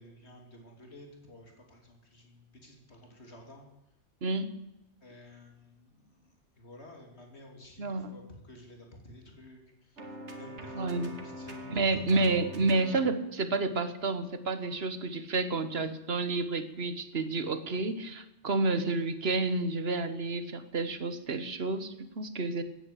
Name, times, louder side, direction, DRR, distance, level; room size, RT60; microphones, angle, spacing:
voice 1, 0.0-3.6 5.0-12.4, left 1 dB, 70° left, 2 dB, 3.3 m, -52 dB
voice 2, 4.2-4.5 7.8-8.1 10.7-11.1 11.7-22.6, right 3 dB, 65° right, 12 dB, 1.5 m, -30 dB
sound 1, 10.0-13.2, equal, 90° right, 2.2 m, -43 dB
16.0 x 9.9 x 8.3 m, 0.96 s
omnidirectional pair, 1.1 m